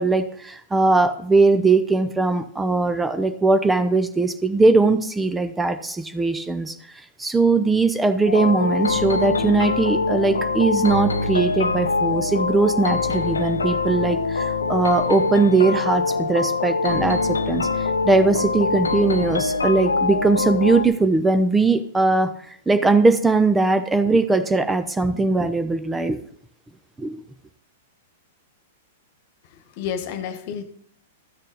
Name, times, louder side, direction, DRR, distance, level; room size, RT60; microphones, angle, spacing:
voice 1, 0.0-6.8 7.2-26.2 27.0-27.2, right 3 dB, 10° right, 9 dB, 0.7 m, -20 dB
sound 1, 8.3-20.9, left 4 dB, 85° left, 0.7 m, -23 dB
voice 2, 29.4-30.6, left 8 dB, 50° left, 9 dB, 1.3 m, -31 dB
13.0 x 6.5 x 3.9 m, 0.63 s
hypercardioid pair, 105°, 0 cm